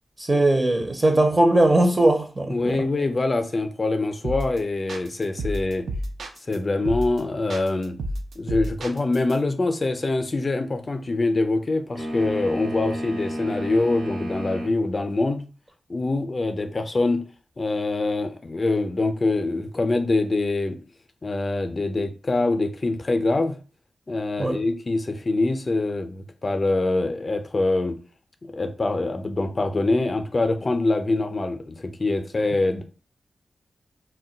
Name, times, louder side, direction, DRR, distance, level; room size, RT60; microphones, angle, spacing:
voice 1, 0.2-2.6 24.4-24.6, right 1 dB, 30° right, 0.5 m, -19 dB
voice 2, 2.5-5.9 6.5-8.0 8.4-15.5 15.9-17.2 17.6-20.8 21.2-23.6 24.1-28.0 28.4-32.8, left 2 dB, 40° left, 0.4 m, -24 dB
sound 1, 4.2-4.6 4.9-6.6 6.9-7.2 7.5-9.3, right 1 dB, 85° right, 0.4 m, -30 dB
sound 2, 12.0-14.8, equal, 65° right, 0.9 m, -31 dB
2.2 x 2.2 x 3.8 m
cardioid pair, 70°, 0 cm